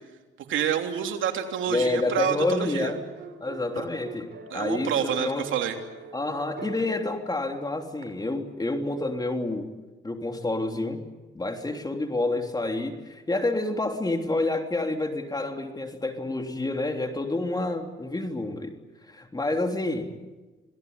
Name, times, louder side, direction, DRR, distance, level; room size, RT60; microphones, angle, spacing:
voice 1, 0.5-2.9 3.7-3.8 4.5-5.7, right 8 dB, 75° right, 4 dB, 3.1 m, -28 dB
sound 1, 1.5-8.0, right 4 dB, 55° right, 6.0 m, -45 dB
voice 2, 1.7-3.0 3.4-5.4 6.1-9.7 10.0-11.0 11.3-18.8 19.1-20.1, left 2 dB, 20° left, 5 dB, 3.4 m, -28 dB
27.0 x 18.0 x 9.6 m, 1.2 s
cardioid pair, 90°, 20 cm